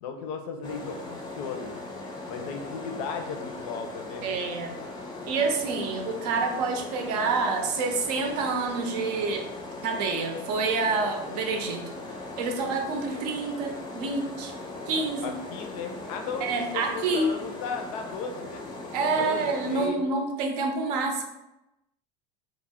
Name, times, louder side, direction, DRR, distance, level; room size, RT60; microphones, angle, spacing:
voice 1, 0.0-1.8 2.2-4.3 15.2-20.1, left 5 dB, 75° left, 5 dB, 0.5 m, -36 dB
sound 1, 0.6-19.9, left 2 dB, 20° left, 0.4 m, -39 dB
voice 2, 4.2-4.8 5.3-9.5 9.8-14.5 14.9-15.3 16.4-17.3 18.9-21.2, right 3 dB, 85° right, 4 dB, 0.6 m, -28 dB
2.3 x 2.1 x 3.4 m, 0.92 s
supercardioid pair, 130°, 20 cm